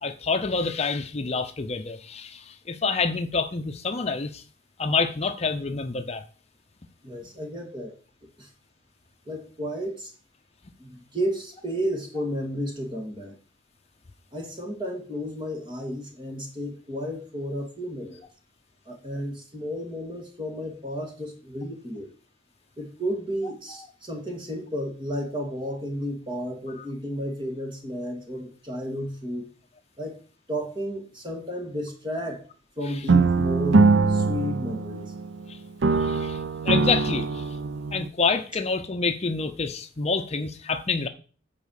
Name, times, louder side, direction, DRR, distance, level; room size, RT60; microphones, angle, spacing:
voice 1, 0.0-4.4 4.8-6.2 23.7-23.9 26.8-26.9 32.9-33.0 35.5-35.6 35.9-37.6 37.9-41.1, left 4 dB, 35° left, 0.7 m, -28 dB
voice 2, 7.0-7.9 8.4-8.5 9.3-10.1 10.8-13.4 14.3-18.2 18.9-22.1 22.8-29.5 30.0-30.2 30.5-32.4 32.8-35.1, equal, 25° right, 2.2 m, -32 dB
sound 1, 33.1-35.4 35.8-38.1, right 4 dB, 85° right, 0.5 m, -22 dB
8.7 x 4.9 x 6.5 m
head